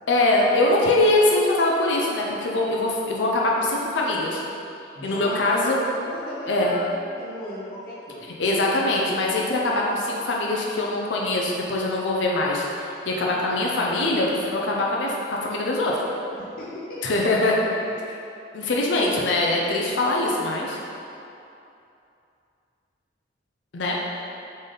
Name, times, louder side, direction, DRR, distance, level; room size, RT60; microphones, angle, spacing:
voice 1, 0.1-4.4 5.0-5.8 6.5-6.7 8.4-16.0 17.0-17.6 18.5-20.8 23.7-24.0, left 2 dB, 85° left, -3 dB, 0.5 m, -23 dB
voice 2, 4.9-6.9 7.2-8.2 16.3-17.0 17.8-17.9 24.1-24.2, left 1 dB, 50° left, -8 dB, 0.9 m, -36 dB
4.0 x 3.4 x 3.8 m, 2.7 s
head